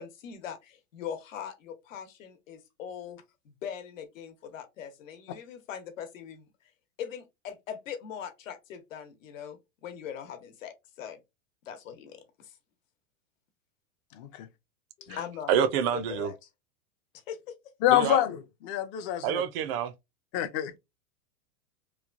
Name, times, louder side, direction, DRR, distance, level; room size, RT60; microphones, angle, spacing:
voice 1, 0.0-6.4 7.0-11.2 11.7-12.5 15.0-16.3 17.3-17.5, left 8 dB, 85° left, 1.0 m, -41 dB
voice 2, 14.2-14.5 15.1-15.2 17.8-19.4 20.3-20.8, left 12 dB, 30° left, 0.4 m, -27 dB
voice 3, 15.5-16.3 17.9-18.2 19.2-19.9, right 9 dB, 50° right, 0.5 m, -27 dB
3.1 x 2.2 x 2.4 m
supercardioid pair, 135°, 38 cm